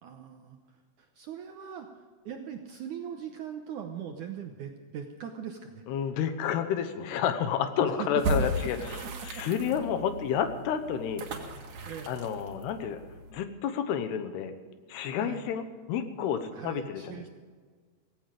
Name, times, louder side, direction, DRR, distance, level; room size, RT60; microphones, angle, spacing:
voice 1, 0.0-5.8 7.8-8.1 9.2-9.4 11.9-12.1 15.2-15.5 16.5-17.3, right 8 dB, 75° right, 4 dB, 1.9 m, -41 dB
voice 2, 5.9-8.8 9.3-11.2 12.1-13.0 13.3-14.5 14.9-17.2, left 8 dB, 80° left, 9 dB, 3.1 m, -30 dB
sound 1, 8.2-13.3, right 2 dB, 55° right, 3.0 m, -36 dB
17.0 x 16.5 x 5.1 m, 1.6 s
omnidirectional pair, 4.7 m